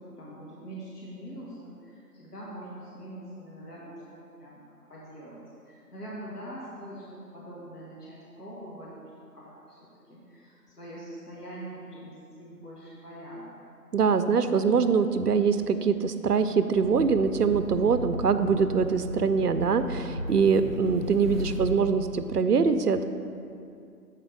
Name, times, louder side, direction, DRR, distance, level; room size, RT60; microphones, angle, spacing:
voice 1, 0.0-4.6 4.9-13.5, right 1 dB, 70° left, -6 dB, 1.6 m, -43 dB
voice 2, 13.9-23.0, right 5 dB, 70° right, 10 dB, 0.5 m, -23 dB
sound 1, 16.8-21.8, equal, 35° left, 1.1 m, -35 dB
7.3 x 4.4 x 5.2 m, 2.6 s
figure-of-eight pair, 175°, 48 cm